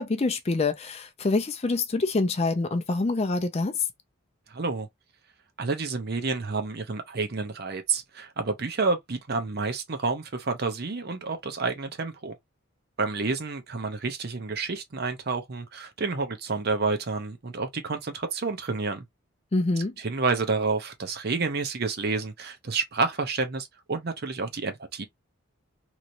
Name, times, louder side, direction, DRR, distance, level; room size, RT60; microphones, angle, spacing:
voice 1, 0.0-3.9 19.5-19.9, left 3 dB, 30° left, 0.4 m, -26 dB
voice 2, 4.5-4.9 5.6-12.3 13.0-19.0 20.0-25.1, right 4 dB, 50° right, 0.6 m, -29 dB
3.0 x 2.8 x 2.5 m
head